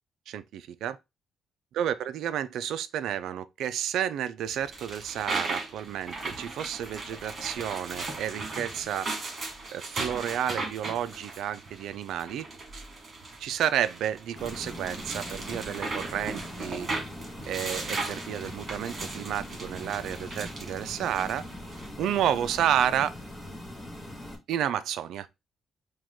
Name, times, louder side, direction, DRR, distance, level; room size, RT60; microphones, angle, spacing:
voice 1, 0.3-1.0 1.7-9.1 9.7-12.5 13.4-16.9 17.4-21.4 22.0-23.1 24.5-25.3, right 10 dB, 80° right, 0.4 m, -31 dB
sound 1, 4.5-21.9, right 3 dB, 40° right, 1.7 m, -37 dB
sound 2, 14.4-24.4, left 1 dB, 20° left, 1.5 m, -42 dB
4.9 x 2.3 x 3.6 m
cardioid pair, 90°, 0 cm